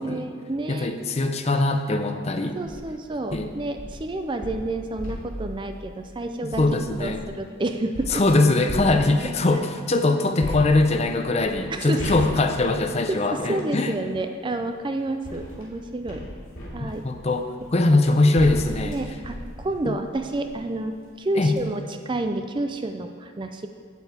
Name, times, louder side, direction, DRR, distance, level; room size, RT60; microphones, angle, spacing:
voice 1, 0.0-1.2 2.6-6.6 7.0-8.2 11.7-12.0 13.1-16.2 16.7-17.1 18.8-23.7, right 2 dB, 25° right, 7 dB, 0.4 m, -30 dB
voice 2, 0.7-2.6 3.3-3.5 6.4-7.2 8.1-14.0 16.8-17.5 17.7-19.0 19.8-20.0 21.4-21.5, left 2 dB, 30° left, 7 dB, 0.5 m, -22 dB
sound 1, 2.5-2.8 3.3-7.3 7.9-9.5 10.4-13.8 14.7-20.6 21.1-21.2 21.5-21.6, left 1 dB, 80° left, 2.6 m, -37 dB
8.7 x 8.0 x 4.3 m, 2.1 s
head